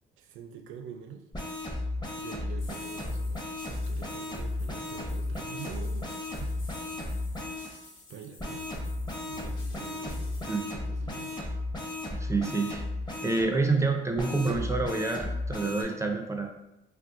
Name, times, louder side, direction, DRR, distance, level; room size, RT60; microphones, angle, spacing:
voice 1, 0.2-1.3 1.6-1.9 2.2-6.1 6.4-7.3 8.1-8.7 9.2-11.4 14.4-14.5, right 8 dB, 80° right, 5 dB, 0.4 m, -46 dB
sound 1, 1.3-7.7 8.4-13.4 14.2-15.8, left 2 dB, 20° left, 0.7 m, -34 dB
sound 2, 2.6-10.6, left 2 dB, 80° left, 1.0 m, -50 dB
voice 2, 12.1-12.9 13.2-16.5, right 3 dB, 15° right, 3 dB, 0.3 m, -28 dB
2.5 x 2.3 x 3.6 m, 0.89 s
cardioid pair, 90°, 20 cm